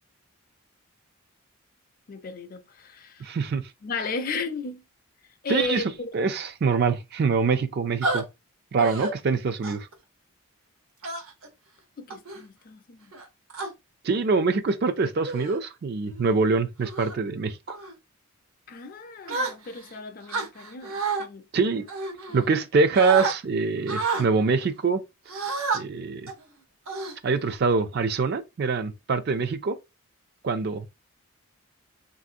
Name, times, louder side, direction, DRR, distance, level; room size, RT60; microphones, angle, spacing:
voice 1, 2.1-3.3 3.8-4.8 5.4-6.1 12.0-13.0 18.7-21.8 22.5-22.6, left 4 dB, 40° left, 0.4 m, -35 dB
voice 2, 3.2-3.6 5.5-5.8 6.1-8.3 8.7-9.9 14.0-17.8 21.5-21.8 22.3-25.0 25.7-26.3 27.2-29.8 30.4-30.9, right 4 dB, 45° right, 0.4 m, -24 dB
sound 1, 8.0-8.2 8.8-9.1 9.6-9.9 11.0-11.5 12.1-12.4 13.1-13.7 14.5-14.7 15.2-15.6 16.1-16.3 16.8-17.2 17.7-17.9 19.3-19.9 20.3-21.2 21.9-22.7 23.0-23.3 23.9-24.3 25.3-25.8 26.3-26.4 26.9-27.5, right 4 dB, 75° right, 0.8 m, -30 dB
3.3 x 2.6 x 2.5 m
head